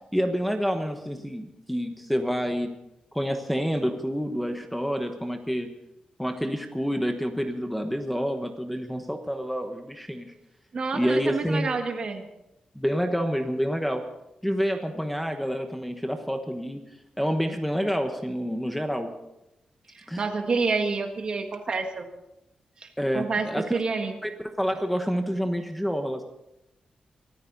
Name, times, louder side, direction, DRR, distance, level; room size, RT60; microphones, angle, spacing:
voice 1, 0.1-2.7 3.1-5.7 6.2-10.3 10.9-11.8 12.7-14.0 14.4-16.8 17.2-19.1 20.1-20.3 23.0-23.8 24.2-26.2, equal, ahead, 5 dB, 1.2 m, -28 dB
voice 2, 10.7-12.3 20.2-22.1 22.8-22.9 23.1-24.1, right 4 dB, 40° right, 5 dB, 1.7 m, -28 dB
24.0 x 14.0 x 4.0 m, 0.88 s
wide cardioid pair, 180°, 2 cm